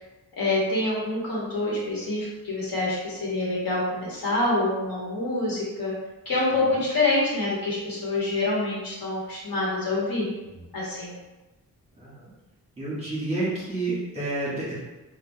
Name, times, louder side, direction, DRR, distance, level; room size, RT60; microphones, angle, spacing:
voice 1, 0.4-5.9 6.2-10.3 10.7-11.2, left 2 dB, 65° left, -6 dB, 1.3 m, -26 dB
voice 2, 12.8-14.8, right 2 dB, 15° right, -9 dB, 1.3 m, -29 dB
5.7 x 2.4 x 2.2 m, 1.1 s
wide cardioid pair, 175°, 37 cm